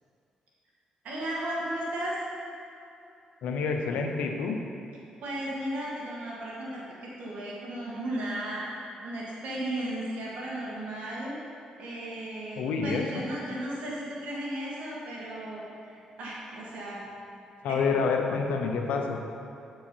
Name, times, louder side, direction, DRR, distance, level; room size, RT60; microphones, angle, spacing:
voice 1, 1.0-2.2 5.2-8.6 9.0-11.4 11.8-17.0 17.7-17.8, right 1 dB, 75° right, -5 dB, 1.8 m, -35 dB
voice 2, 3.4-4.6 12.6-13.2 17.6-19.2, left 5 dB, 80° left, 3 dB, 0.7 m, -28 dB
8.2 x 4.7 x 4.4 m, 2.7 s
cardioid pair, 75°, 2 cm